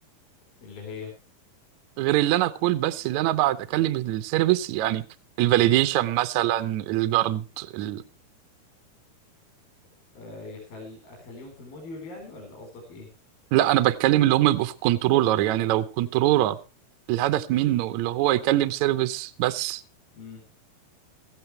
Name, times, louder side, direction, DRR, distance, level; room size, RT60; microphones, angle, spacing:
voice 1, 0.6-1.1 10.2-13.1 20.1-20.4, left 3 dB, 70° left, 0 dB, 6.1 m, -41 dB
voice 2, 2.0-5.0 5.4-8.0 13.5-16.6 17.1-19.8, right 14 dB, 80° right, 11 dB, 1.7 m, -23 dB
17.0 x 14.5 x 3.2 m, 0.31 s
omnidirectional pair, 4.5 m